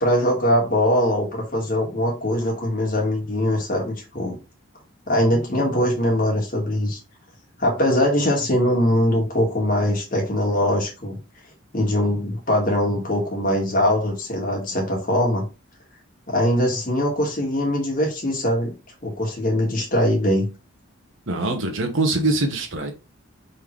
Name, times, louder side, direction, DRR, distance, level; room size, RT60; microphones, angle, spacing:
voice 1, 0.0-4.3 5.1-7.0 7.6-11.2 11.7-15.5 16.3-18.7 19.0-20.5, left 1 dB, 40° left, 1.6 m, -22 dB
voice 2, 21.3-22.9, right 2 dB, 60° right, 1.1 m, -23 dB
4.4 x 3.6 x 3.1 m
head